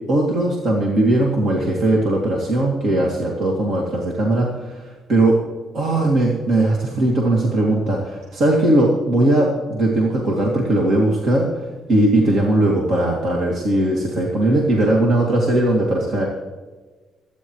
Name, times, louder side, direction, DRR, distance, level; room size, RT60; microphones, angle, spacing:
voice 1, 0.1-5.4 5.7-16.3, right 1 dB, 65° right, -2 dB, 2.5 m, -19 dB
24.0 x 9.9 x 3.2 m, 1.3 s
cardioid pair, 90°, 0 cm